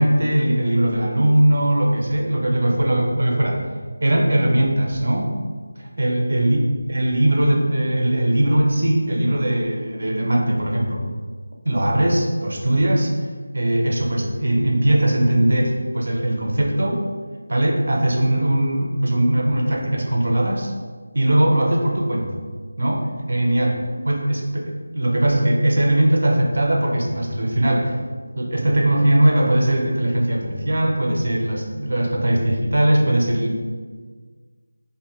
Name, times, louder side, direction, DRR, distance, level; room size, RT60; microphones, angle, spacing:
voice 1, 0.0-3.6 4.0-5.3 5.8-6.6 6.9-11.1 11.6-13.1 13.5-17.0 17.5-20.7 21.1-22.4 22.8-23.8 24.0-27.9 28.4-33.5, right 1 dB, 55° right, 1 dB, 0.6 m, -20 dB
2.7 x 2.6 x 3.8 m, 1.5 s
figure-of-eight pair, 165°, 0 cm